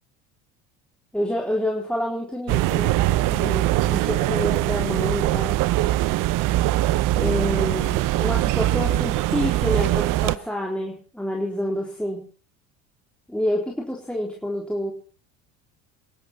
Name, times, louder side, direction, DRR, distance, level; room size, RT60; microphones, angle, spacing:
voice 1, 1.1-3.0 3.3-5.6 7.1-12.2 13.3-14.9, left 1 dB, 5° left, -2 dB, 3.9 m, -28 dB
sound 1, 2.5-10.4, right 16 dB, 55° right, 0.7 m, -22 dB
27.5 x 11.0 x 4.5 m, 0.38 s
hypercardioid pair, 70°, 39 cm